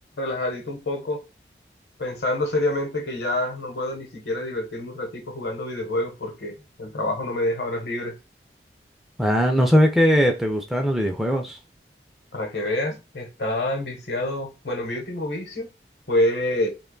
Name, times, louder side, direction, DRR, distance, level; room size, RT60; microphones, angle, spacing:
voice 1, 0.2-1.2 2.0-8.1 12.3-15.7 16.1-16.7, left 1 dB, 75° left, 0.9 m, -27 dB
voice 2, 9.2-11.6, equal, ahead, 0.4 m, -20 dB
2.9 x 2.2 x 3.7 m
head